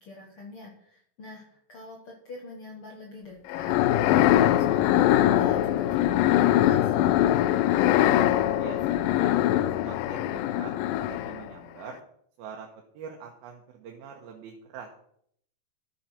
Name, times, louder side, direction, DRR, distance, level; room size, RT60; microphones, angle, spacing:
voice 1, 0.0-6.9, left 3 dB, 50° left, -1 dB, 1.9 m, -45 dB
sound 1, 3.5-11.5, left 12 dB, 80° left, 2.1 m, -22 dB
voice 2, 7.9-8.3 8.5-9.4 9.7-10.7 11.1-12.0 12.4-12.7 12.9-14.9, right 7 dB, 85° right, 1 dB, 3.0 m, -43 dB
13.0 x 7.1 x 5.7 m, 0.68 s
omnidirectional pair, 4.2 m